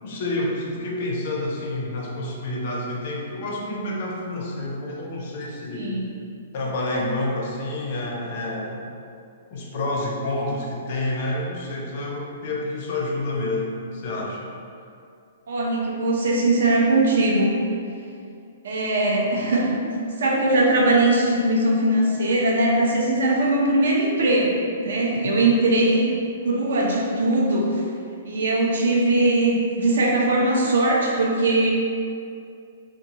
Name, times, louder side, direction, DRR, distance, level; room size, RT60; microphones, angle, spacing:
voice 1, 0.0-6.0 6.5-8.8 9.5-14.5 25.2-25.4, left 2 dB, 40° left, -1 dB, 0.4 m, -28 dB
voice 2, 5.7-6.0 15.5-17.5 18.6-19.8 20.2-26.1 26.4-27.8 28.2-31.7, right 2 dB, 70° right, -2 dB, 0.5 m, -20 dB
2.8 x 2.2 x 2.8 m, 2.4 s
hypercardioid pair, 175°, 0 cm